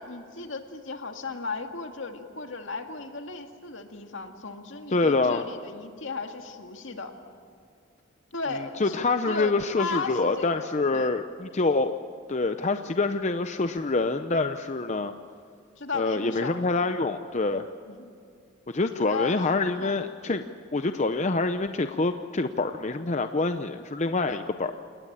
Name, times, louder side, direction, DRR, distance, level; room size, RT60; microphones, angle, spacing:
voice 1, 0.0-7.1 8.3-9.0 9.3-11.2 15.8-16.6 17.9-18.1 18.9-20.0 24.3-24.5, left 4 dB, 70° left, 5 dB, 2.1 m, -36 dB
voice 2, 4.9-5.4 8.5-11.9 12.3-15.1 15.9-17.7 18.7-20.4 20.7-24.8, left 3 dB, 35° left, 8 dB, 0.7 m, -26 dB
29.5 x 19.0 x 8.8 m, 2.3 s
head